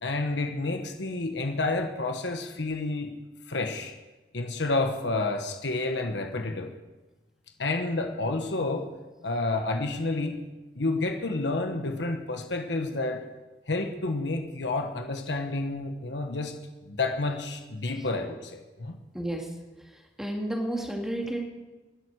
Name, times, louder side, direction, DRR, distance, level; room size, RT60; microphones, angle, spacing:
voice 1, 0.0-3.2 3.5-3.9 4.3-6.7 7.6-8.9 9.2-10.4 10.7-13.2 13.7-16.6 16.9-18.9, left 2 dB, 85° left, 5 dB, 1.3 m, -30 dB
voice 2, 19.1-19.5 19.8-21.4, right 1 dB, 5° right, 0 dB, 2.1 m, -32 dB
19.5 x 11.0 x 4.8 m, 1.2 s
head